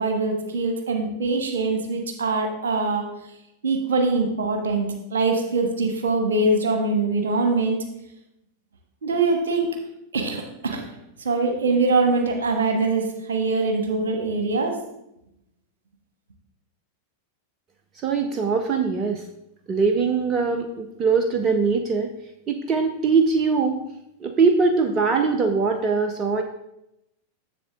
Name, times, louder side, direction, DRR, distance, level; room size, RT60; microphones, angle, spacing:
voice 1, 0.0-3.0 3.6-7.8 9.0-9.7 10.1-10.8 11.2-14.7, right 3 dB, 65° right, 4 dB, 1.4 m, -23 dB
voice 2, 18.0-19.2 19.7-22.1 22.5-23.8 24.2-26.4, right 4 dB, 30° right, 5 dB, 0.7 m, -22 dB
7.3 x 6.9 x 3.6 m, 0.83 s
figure-of-eight pair, 90°, 0 cm